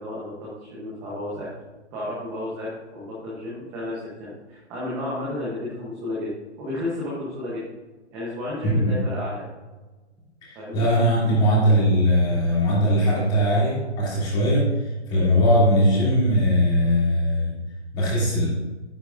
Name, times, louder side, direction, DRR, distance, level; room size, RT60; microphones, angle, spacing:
voice 1, 0.0-1.5 1.9-6.3 6.6-7.6 8.1-9.5 10.5-10.8, left 1 dB, 10° right, -6 dB, 0.8 m, -32 dB
voice 2, 8.6-9.0 10.4-17.5 17.9-18.5, equal, 15° left, -6 dB, 2.6 m, -20 dB
10.0 x 9.8 x 2.5 m, 1.2 s
hypercardioid pair, 165°, 35 cm